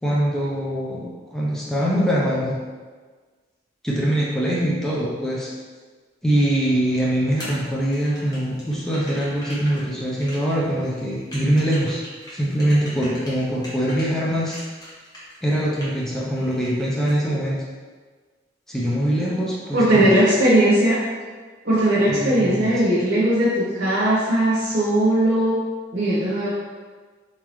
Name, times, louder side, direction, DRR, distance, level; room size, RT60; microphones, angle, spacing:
voice 1, 0.0-2.6 3.8-5.5 6.2-12.0 12.3-14.6 15.4-17.6 18.7-20.1 22.1-22.7, right 1 dB, 5° left, -6 dB, 0.6 m, -23 dB
sound 1, 7.4-14.1 14.5-16.1 16.4-17.1, equal, 20° left, 1.2 m, -39 dB
voice 2, 19.7-21.0 21.6-25.6 25.9-26.5, right 1 dB, 60° right, -11 dB, 1.3 m, -18 dB
4.3 x 3.8 x 3.1 m, 1.5 s
head